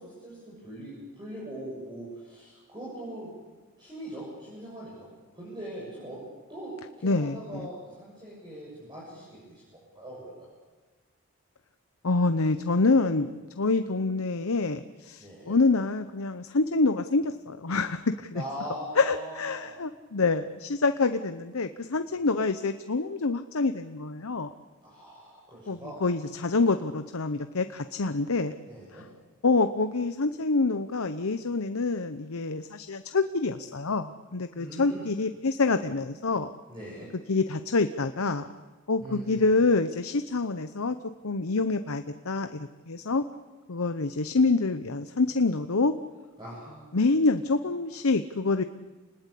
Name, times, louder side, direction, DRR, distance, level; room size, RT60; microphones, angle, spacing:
voice 1, 0.0-3.4 3.8-5.1 5.3-6.2 6.5-10.5 15.2-15.6 18.3-19.9 22.1-22.3 24.8-26.0 28.7-29.1 34.6-35.1 36.7-37.1 39.0-39.4 46.4-46.8, right 1 dB, 20° right, -6 dB, 7.6 m, -41 dB
voice 2, 7.0-7.7 12.0-18.4 19.0-24.5 25.7-28.5 29.4-36.5 37.3-38.4 38.9-40.9 41.2-43.2 43.7-45.9 46.9-48.6, left 3 dB, 80° left, 9 dB, 0.9 m, -26 dB
29.5 x 20.5 x 8.5 m, 1.3 s
head